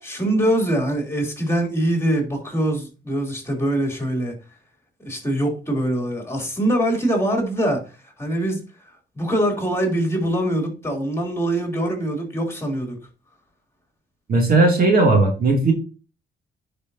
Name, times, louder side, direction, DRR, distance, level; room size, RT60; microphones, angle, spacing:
voice 1, 0.0-4.3 5.0-8.6 9.1-13.0, right 1 dB, 15° left, 1 dB, 3.2 m, -23 dB
voice 2, 14.3-15.7, right 3 dB, 45° right, 1 dB, 2.6 m, -16 dB
10.0 x 5.1 x 2.8 m, 0.33 s
cardioid pair, 90°, 20 cm